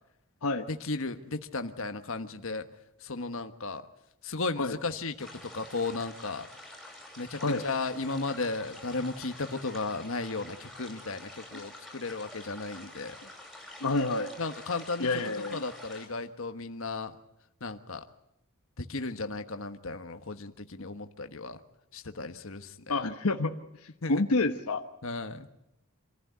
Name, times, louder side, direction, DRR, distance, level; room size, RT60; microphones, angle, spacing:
voice 1, 0.7-2.7 3.0-3.9 4.2-6.5 7.2-13.2 14.4-17.2 17.6-18.0 18.8-21.6 21.9-23.0 24.0-24.2 25.0-25.5, left 3 dB, 65° left, 8 dB, 1.4 m, -35 dB
sound 1, 5.2-16.1, left 1 dB, ahead, 5.5 m, -48 dB
voice 2, 13.8-14.3 15.0-15.6 22.9-23.6 24.1-24.8, left 3 dB, 85° left, 6 dB, 1.1 m, -28 dB
26.5 x 15.5 x 9.5 m, 0.87 s
head